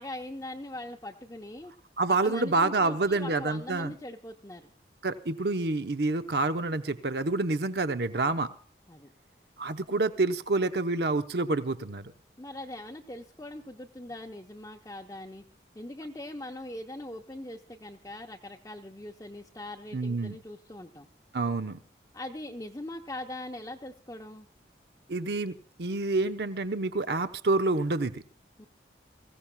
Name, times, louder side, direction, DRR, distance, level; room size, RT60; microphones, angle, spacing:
voice 1, 0.0-1.7 2.1-4.7 8.9-9.1 12.4-15.4 15.7-21.1 22.1-24.5 28.6-28.7, left 1 dB, 20° left, -1 dB, 0.8 m, -41 dB
voice 2, 2.0-3.9 5.0-8.5 9.6-12.1 19.9-20.4 21.3-21.8 25.1-28.2, right 3 dB, 65° right, 9 dB, 0.8 m, -28 dB
23.5 x 16.0 x 2.3 m, 0.42 s
head